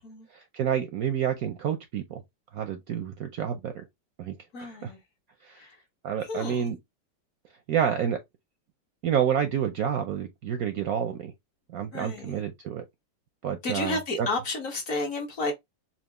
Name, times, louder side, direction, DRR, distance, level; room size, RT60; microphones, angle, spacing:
voice 1, 0.3-2.2 2.5-3.8 4.2-4.9 5.4-5.7 6.0-6.8 7.7-8.2 9.0-11.3 11.7-12.8 13.4-14.3, right 8 dB, 70° right, 0.9 m, -29 dB
voice 2, 4.5-5.0 6.3-6.6 11.9-12.3 13.6-15.5, left 2 dB, 50° left, 1.3 m, -31 dB
4.4 x 2.5 x 3.2 m
omnidirectional pair, 2.0 m